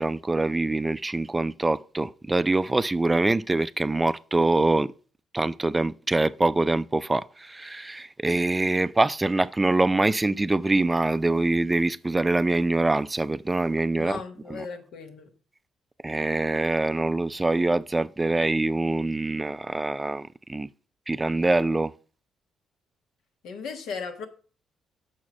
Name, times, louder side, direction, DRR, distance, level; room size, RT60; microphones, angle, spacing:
voice 1, 0.0-4.9 5.3-14.2 14.5-14.6 16.0-20.7 21.1-21.9, right 2 dB, 15° right, 0.3 m, -24 dB
voice 2, 14.0-15.3 23.4-24.3, left 5 dB, 80° left, 1.4 m, -36 dB
6.2 x 4.7 x 6.2 m
cardioid pair, 90°, 0 cm